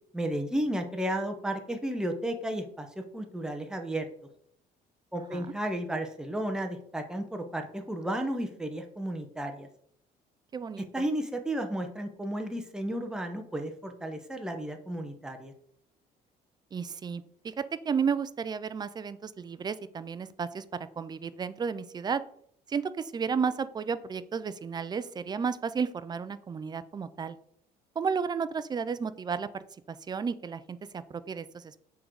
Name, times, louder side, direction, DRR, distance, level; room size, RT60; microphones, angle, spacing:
voice 1, 0.1-4.1 5.1-9.7 10.9-15.5, right 1 dB, 5° right, 5 dB, 0.9 m, -33 dB
voice 2, 10.5-10.9 16.7-22.2 22.7-27.4 28.0-31.8, right 6 dB, 25° right, 13 dB, 0.4 m, -33 dB
7.0 x 3.8 x 4.7 m, 0.67 s
cardioid pair, 110°, 17 cm